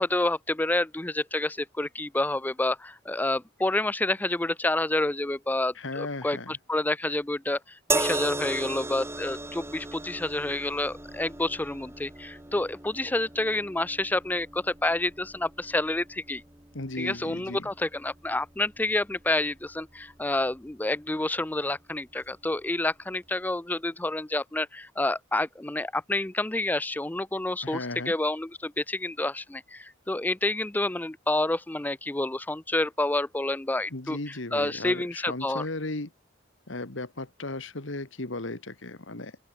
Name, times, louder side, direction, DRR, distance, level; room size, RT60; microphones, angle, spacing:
voice 1, 0.0-16.4 17.0-34.2 34.5-35.7, left 2 dB, 10° left, 0.4 m, -29 dB
voice 2, 5.8-6.6 16.7-17.7 27.6-28.2 33.9-36.1 36.7-39.4, left 2 dB, 70° left, 2.0 m, -36 dB
sound 1, 7.9-21.2 22.2-22.4, right 2 dB, 15° right, 1.3 m, -37 dB
open air
head